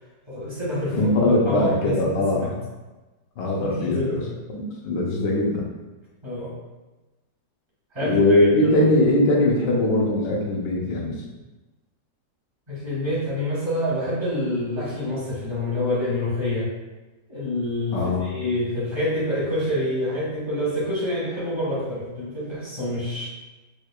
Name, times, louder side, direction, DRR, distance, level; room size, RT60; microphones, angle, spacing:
voice 1, 0.3-2.5 3.6-4.2 6.2-6.5 7.9-8.5 12.7-16.7 17.3-23.3, left 1 dB, 30° right, -9 dB, 0.5 m, -27 dB
voice 2, 0.9-2.5 3.4-4.2 4.5-5.7 8.0-11.2 17.9-18.3, left 1 dB, 75° left, -2 dB, 1.2 m, -21 dB
4.5 x 2.3 x 2.3 m, 1.1 s
omnidirectional pair, 2.0 m